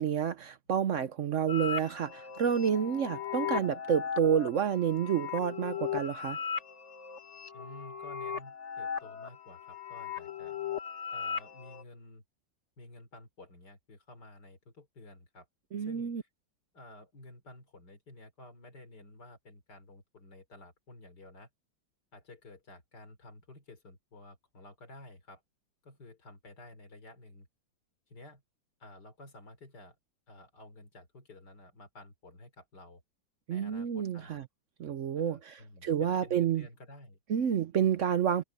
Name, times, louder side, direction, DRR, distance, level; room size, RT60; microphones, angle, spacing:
voice 1, 0.0-6.4 15.7-16.2 33.5-34.4 34.8-35.6 35.8-36.6 37.3-38.4, right 8 dB, 65° right, 0.8 m, -29 dB
sound 1, 1.5-11.8, left 8 dB, 40° left, 1.6 m, -38 dB
voice 2, 7.5-10.6 11.1-12.2 12.8-15.5 15.8-16.3 16.7-21.5 22.1-25.4 25.8-27.5 28.1-28.4 28.8-30.0 30.3-33.0 33.5-34.4 35.2-37.2, left 2 dB, 60° left, 4.2 m, -52 dB
omnidirectional pair, 2.0 m